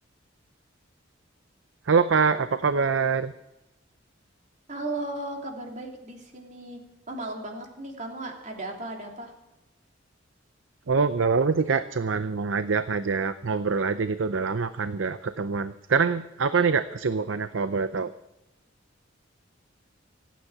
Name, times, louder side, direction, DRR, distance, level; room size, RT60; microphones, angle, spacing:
voice 1, 1.9-3.3 10.9-18.1, right 5 dB, 75° right, 12 dB, 0.6 m, -25 dB
voice 2, 4.7-6.8 7.1-9.3, right 2 dB, 40° right, 1 dB, 3.0 m, -36 dB
26.0 x 9.3 x 4.8 m, 0.95 s
head